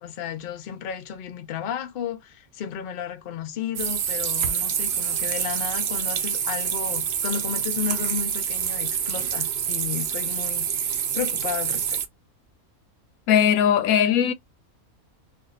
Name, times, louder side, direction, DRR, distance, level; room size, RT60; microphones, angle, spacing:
voice 1, 0.0-12.0, left 8 dB, 55° left, 0.7 m, -33 dB
sound 1, 3.7-12.1, right 8 dB, 60° right, 0.7 m, -27 dB
voice 2, 13.3-14.3, left 9 dB, 80° left, 1.0 m, -19 dB
2.6 x 2.5 x 3.9 m
omnidirectional pair, 1.5 m